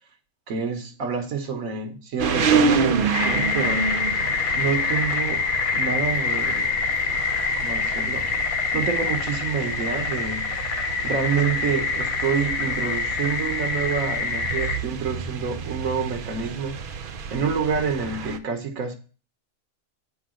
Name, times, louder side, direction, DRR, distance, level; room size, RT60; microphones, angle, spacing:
voice 1, 0.5-3.9 4.6-5.4 5.7-6.8 7.5-8.3 8.7-10.5 11.0-18.9, right 6 dB, 70° right, 1.4 m, -28 dB
sound 1, 2.2-18.4, right 5 dB, 50° right, 0.6 m, -29 dB
sound 2, 3.1-14.8, left 5 dB, 85° left, 1.2 m, -26 dB
7.9 x 3.9 x 6.2 m
omnidirectional pair, 1.5 m